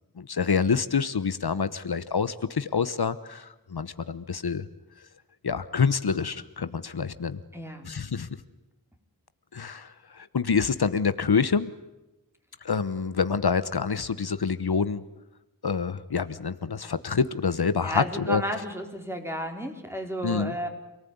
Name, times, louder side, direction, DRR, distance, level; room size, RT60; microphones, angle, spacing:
voice 1, 0.2-4.6 5.4-7.4 7.8-8.3 9.5-11.7 12.6-15.0 15.6-18.4 20.2-20.5, left 5 dB, 80° left, 14 dB, 1.1 m, -27 dB
voice 2, 7.5-8.0 17.8-20.7, equal, 5° right, 4 dB, 4.3 m, -32 dB
28.0 x 18.5 x 9.5 m, 1.0 s
wide cardioid pair, 65°, 38 cm